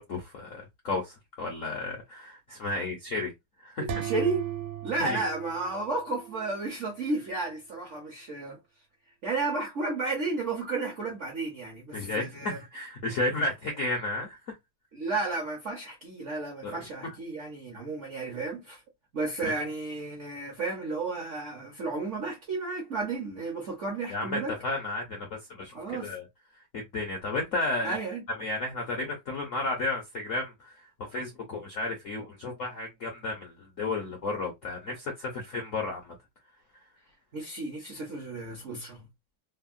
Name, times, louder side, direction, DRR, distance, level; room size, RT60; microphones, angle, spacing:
voice 1, 0.0-3.3 3.6-3.9 5.0-5.2 11.9-14.5 16.6-17.1 19.4-19.5 24.1-25.7 26.0-26.3 26.7-28.0 28.4-30.7 31.1-36.1, left 2 dB, 65° left, 0.8 m, -33 dB
voice 2, 3.8-4.5 4.8-8.6 9.2-12.6 14.9-18.8 19.1-24.5 25.7-26.1 27.8-28.2 37.3-39.0, right 3 dB, 60° right, 0.8 m, -33 dB
sound 1, 3.9-6.6, right 10 dB, 90° right, 1.4 m, -36 dB
3.4 x 2.1 x 2.4 m
omnidirectional pair, 2.2 m